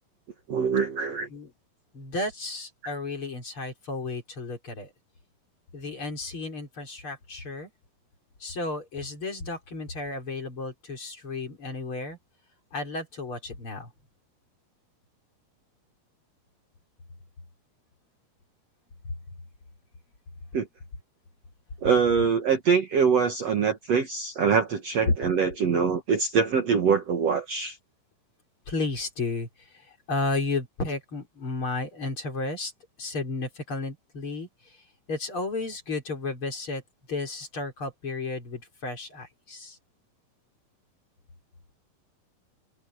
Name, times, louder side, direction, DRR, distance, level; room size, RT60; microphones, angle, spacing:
voice 1, 0.5-1.3 20.5-20.7 21.8-27.8, right 6 dB, 55° right, 2.2 m, -24 dB
voice 2, 1.9-4.9 5.7-7.7 8.4-12.2 12.7-13.9 25.1-25.2 28.7-32.7 33.0-34.8 35.1-36.8 37.1-39.8, left 3 dB, 35° left, 4.4 m, -33 dB
open air
omnidirectional pair, 4.3 m